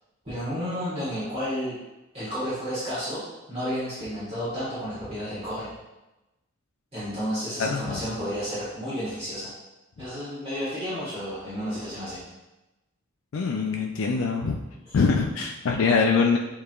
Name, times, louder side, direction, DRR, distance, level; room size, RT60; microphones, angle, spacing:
voice 1, 0.2-1.7 2.1-3.2 3.5-5.7 6.9-9.5 10.0-12.2, equal, 30° right, -11 dB, 1.5 m, -31 dB
voice 2, 7.6-8.1 13.3-14.6 14.9-16.4, left 4 dB, 80° left, 1 dB, 0.4 m, -23 dB
6.7 x 3.2 x 2.4 m, 1.0 s
head